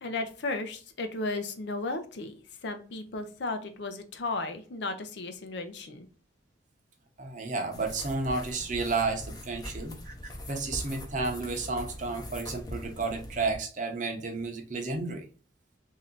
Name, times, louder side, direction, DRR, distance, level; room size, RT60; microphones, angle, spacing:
voice 1, 0.0-6.1, left 2 dB, 65° left, 7 dB, 0.6 m, -35 dB
voice 2, 7.2-10.1 10.5-15.3, right 3 dB, 40° right, 4 dB, 0.7 m, -32 dB
sound 1, 7.7-13.6, left 1 dB, 20° left, 0.6 m, -42 dB
3.2 x 2.7 x 3.7 m, 0.38 s
head